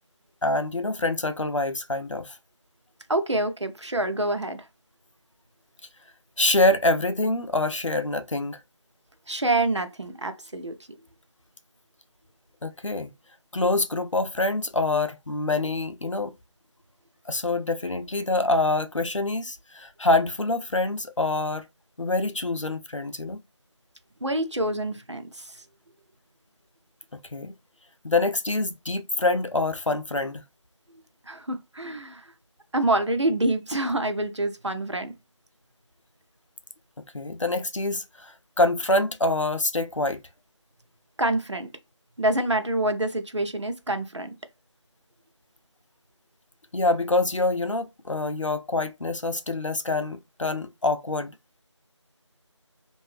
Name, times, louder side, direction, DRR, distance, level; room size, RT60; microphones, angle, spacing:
voice 1, 0.4-2.4 6.4-8.6 12.6-13.1 13.5-16.3 17.3-21.7 22.0-23.4 27.1-27.5 28.0-30.5 37.0-40.2 46.7-51.4, left 2 dB, 90° left, 0.6 m, -25 dB
voice 2, 3.1-4.7 9.3-10.8 24.2-25.6 31.3-32.3 32.7-35.1 41.2-41.7 42.2-44.3, right 1 dB, 70° right, 0.7 m, -26 dB
2.7 x 2.6 x 3.2 m
figure-of-eight pair, 175°, 16 cm